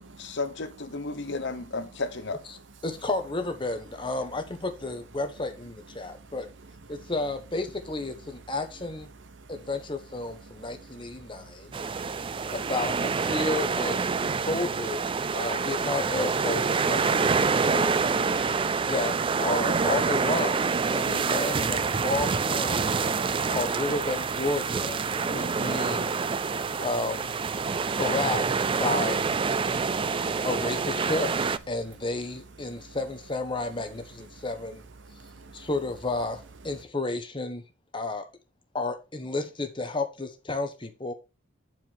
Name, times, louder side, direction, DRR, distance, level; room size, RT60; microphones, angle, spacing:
voice 1, 0.0-2.4, left 3 dB, 55° left, 0.8 m, -33 dB
voice 2, 2.8-6.5 6.9-9.1 9.5-11.8 12.5-14.0 14.3-18.2 18.8-19.1 19.4-22.9 23.5-26.1 26.8-27.3 27.9-29.3 30.4-31.4 31.7-34.8 35.5-37.6 37.9-38.3 38.7-41.1, left 2 dB, 25° left, 1.1 m, -32 dB
voice 3, 11.4-12.5 18.4-18.8 26.4-26.8 27.7-27.9 29.7-30.3 35.1-35.7, right 3 dB, 60° right, 0.9 m, -49 dB
sound 1, 11.7-31.6, right 5 dB, 25° right, 0.3 m, -27 dB
9.1 x 4.7 x 4.5 m
head